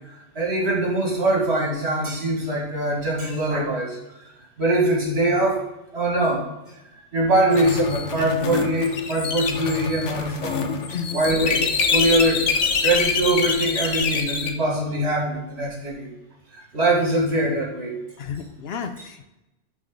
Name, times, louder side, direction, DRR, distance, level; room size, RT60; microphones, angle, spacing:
voice 1, 0.1-4.0 4.6-5.6 5.9-6.4 7.1-10.7 11.1-12.5 12.8-16.1 16.5-18.0, right 1 dB, 65° right, -2 dB, 2.2 m, -22 dB
sound 1, 7.5-14.5, left 5 dB, 85° left, 1.2 m, -25 dB
voice 2, 18.2-19.3, left 6 dB, 65° left, 8 dB, 0.8 m, -32 dB
10.5 x 3.7 x 3.8 m, 0.95 s
omnidirectional pair, 1.2 m